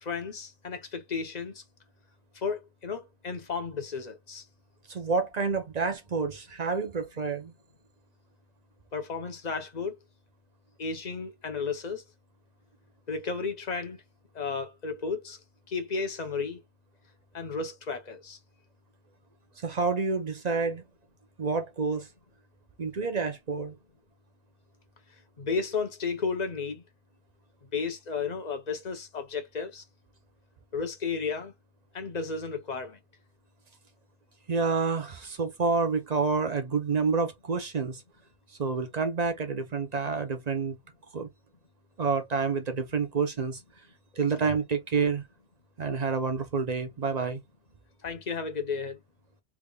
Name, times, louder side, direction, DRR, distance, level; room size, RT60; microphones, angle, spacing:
voice 1, 0.0-1.6 2.3-4.4 8.9-10.0 10.8-12.0 13.1-14.0 14.3-15.4 15.7-16.6 17.3-18.4 25.4-26.8 27.7-29.8 30.7-31.5 31.9-33.0 44.3-44.4 48.0-49.0, left 5 dB, 45° left, 0.9 m, -33 dB
voice 2, 4.9-7.5 19.6-20.8 21.4-22.1 22.8-23.8 34.5-38.0 38.6-40.8 41.1-41.3 42.0-43.6 44.2-45.2 45.8-47.4, right 4 dB, 45° right, 0.7 m, -28 dB
3.5 x 3.4 x 2.3 m
omnidirectional pair, 1.1 m